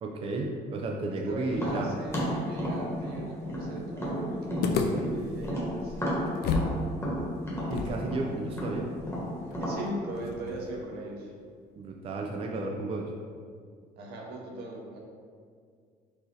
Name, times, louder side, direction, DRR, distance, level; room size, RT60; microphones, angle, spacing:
voice 1, 0.0-1.9 7.7-8.9 11.8-13.1, right 2 dB, 35° right, 1 dB, 0.4 m, -33 dB
voice 2, 1.0-6.0 9.6-11.3 14.0-15.0, right 2 dB, 75° right, -1 dB, 0.8 m, -39 dB
Tap, 1.5-5.1 5.4-9.8, equal, 15° left, 1.2 m, -32 dB
sound 1, 4.6-6.8 7.0-7.1 7.7-10.8, left 4 dB, 70° left, 0.4 m, -33 dB
4.5 x 2.8 x 3.2 m, 2.1 s
cardioid pair, 110°, 17 cm